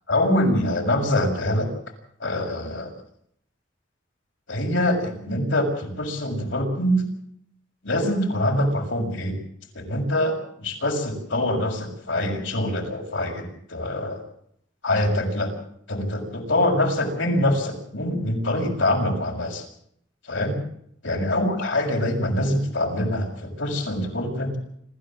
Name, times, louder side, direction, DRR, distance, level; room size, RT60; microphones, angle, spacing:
voice 1, 0.1-1.7 2.2-2.9 4.5-7.0 7.8-9.3 9.7-14.2 14.8-15.5 15.9-19.6 20.3-20.6 21.0-24.5, left 1 dB, 85° left, 2 dB, 6.5 m, -24 dB
26.5 x 14.0 x 7.6 m, 0.69 s
head